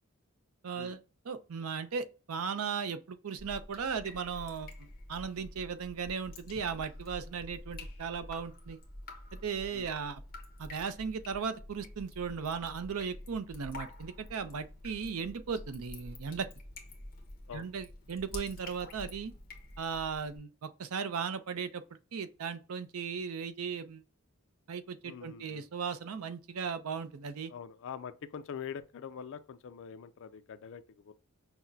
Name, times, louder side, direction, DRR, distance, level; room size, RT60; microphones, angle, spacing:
voice 1, 0.6-1.0 1.3-8.8 9.3-10.2 10.6-16.5 17.5-19.3 19.8-21.8 22.1-24.0 24.7-27.5, right 6 dB, 75° right, 0.5 m, -37 dB
Drip, 3.4-20.4, left 1 dB, 45° left, 1.1 m, -48 dB
voice 2, 25.0-25.7 27.5-31.1, left 7 dB, 60° left, 0.4 m, -44 dB
5.9 x 2.1 x 2.7 m
head